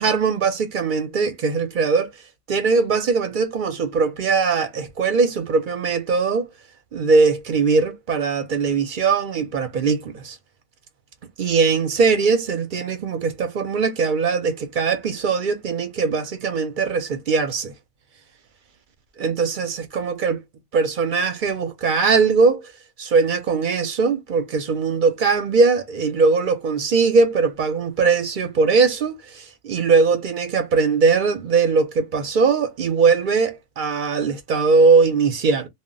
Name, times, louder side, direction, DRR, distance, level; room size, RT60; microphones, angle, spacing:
voice 1, 0.0-2.1 2.5-6.5 6.9-10.4 11.4-17.7 19.2-20.4 20.7-22.7 23.0-35.7, right 4 dB, 55° right, 0.6 m, -20 dB
2.1 x 2.0 x 3.8 m
omnidirectional pair, 1.2 m